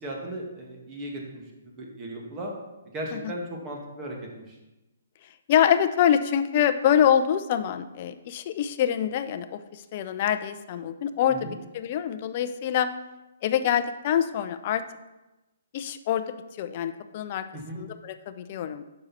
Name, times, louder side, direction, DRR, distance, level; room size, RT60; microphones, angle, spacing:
voice 1, 0.0-2.5 2.9-4.6 11.3-11.6 17.5-17.8, right 1 dB, 25° right, -1 dB, 2.2 m, -37 dB
voice 2, 5.5-12.9 13.4-14.8 15.7-17.4 17.8-18.8, left 9 dB, 40° left, 10 dB, 0.6 m, -25 dB
9.6 x 6.7 x 4.3 m, 1.0 s
figure-of-eight pair, 130°, 0 cm